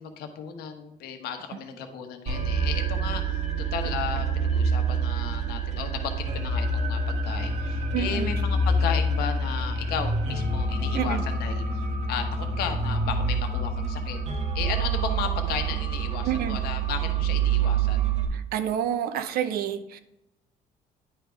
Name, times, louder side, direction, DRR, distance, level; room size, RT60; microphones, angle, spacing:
voice 1, 0.0-3.4 3.7-11.6 12.1-12.2 12.6-14.2 14.5-18.0, left 7 dB, 85° left, 6 dB, 1.0 m, -34 dB
sound 1, 2.3-18.3, right 3 dB, 45° right, 1.2 m, -27 dB
voice 2, 7.9-8.4 10.9-11.2 16.2-16.6 18.3-20.0, right 9 dB, 75° right, 11 dB, 0.6 m, -28 dB
9.9 x 3.5 x 5.0 m, 0.84 s
cardioid pair, 115°, 16 cm